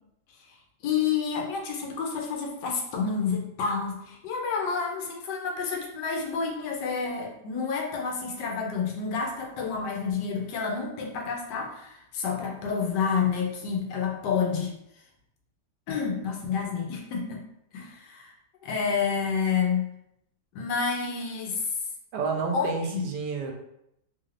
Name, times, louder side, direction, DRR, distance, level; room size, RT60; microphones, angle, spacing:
voice 1, 0.8-14.7 15.9-17.4 17.7-18.3 18.6-19.9 20.5-21.7 22.5-23.0, left 6 dB, 85° left, 0 dB, 1.3 m, -29 dB
voice 2, 22.1-23.5, right 5 dB, 85° right, 2 dB, 1.2 m, -30 dB
3.3 x 2.4 x 3.2 m, 0.80 s
omnidirectional pair, 1.8 m